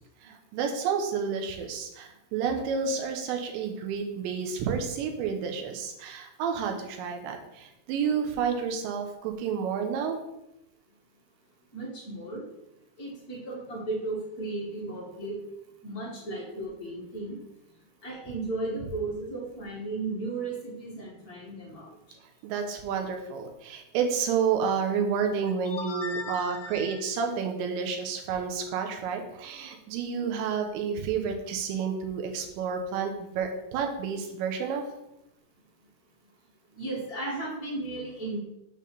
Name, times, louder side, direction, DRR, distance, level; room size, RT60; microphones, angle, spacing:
voice 1, 0.2-10.2 22.4-34.8, right 6 dB, 75° right, 4 dB, 3.1 m, -30 dB
voice 2, 11.7-12.4 13.0-15.4 15.8-17.4 18.0-21.9 25.6-27.0 36.7-38.4, right 2 dB, 40° left, -6 dB, 1.3 m, -35 dB
8.6 x 3.5 x 6.8 m, 0.87 s
omnidirectional pair, 5.5 m